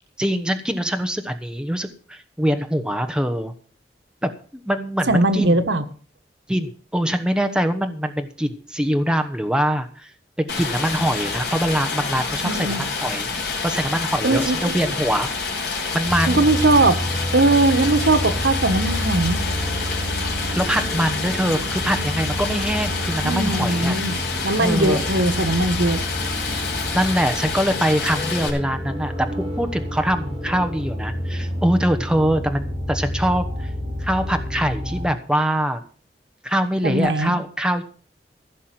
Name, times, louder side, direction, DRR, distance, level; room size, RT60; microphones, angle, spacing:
voice 1, 0.2-3.5 4.2-5.6 6.5-10.1 10.4-13.3 13.6-15.3 15.9-16.4 20.5-24.0 24.6-25.1 26.9-33.7 34.0-35.8 36.4-37.8, equal, 5° right, 7 dB, 1.0 m, -23 dB
voice 2, 5.1-5.8 12.4-12.8 14.2-14.7 16.3-17.0 17.3-19.4 23.2-24.2 24.4-26.0 36.8-37.3, right 2 dB, 90° right, 9 dB, 1.4 m, -19 dB
Stream, 10.5-28.5, left 4 dB, 65° left, 4.2 m, -28 dB
sound 1, 16.0-35.1, equal, 35° right, 5.0 m, -29 dB
15.5 x 6.3 x 7.6 m, 0.42 s
head